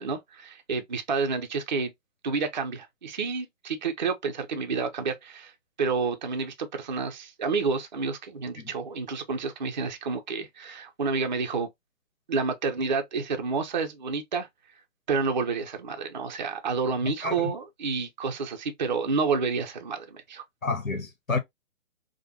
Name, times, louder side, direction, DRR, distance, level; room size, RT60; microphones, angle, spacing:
voice 1, 0.0-1.9 2.2-5.5 5.8-11.7 12.3-14.5 15.1-20.4, right 4 dB, 35° right, 0.5 m, -29 dB
voice 2, 17.0-17.5 20.6-21.4, left 4 dB, 80° left, 1.1 m, -30 dB
4.8 x 2.1 x 2.7 m
figure-of-eight pair, 135°, 40 cm